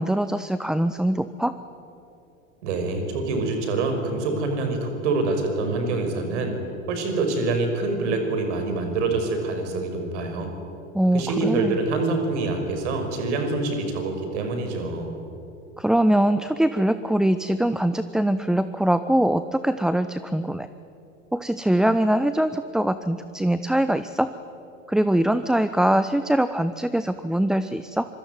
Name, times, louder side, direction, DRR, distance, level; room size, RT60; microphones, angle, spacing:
voice 1, 0.0-1.5 10.9-11.8 15.8-20.7 21.3-24.3 24.9-28.1, right 1 dB, ahead, 12 dB, 0.6 m, -22 dB
voice 2, 2.6-6.6 6.9-10.5 11.1-15.1, right 3 dB, 60° right, 5 dB, 6.0 m, -26 dB
25.0 x 24.5 x 9.3 m, 2.8 s
figure-of-eight pair, 85°, 40 cm